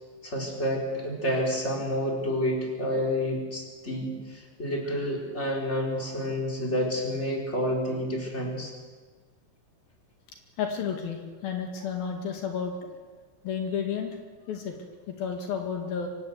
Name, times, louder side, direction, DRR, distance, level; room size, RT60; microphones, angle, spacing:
voice 1, 0.2-8.7, equal, 15° left, 0 dB, 4.4 m, -29 dB
voice 2, 10.6-12.7 13.4-14.2 14.5-14.8 15.1-16.1, left 7 dB, 75° left, 3 dB, 3.9 m, -31 dB
25.0 x 17.0 x 8.2 m, 1.5 s
omnidirectional pair, 4.3 m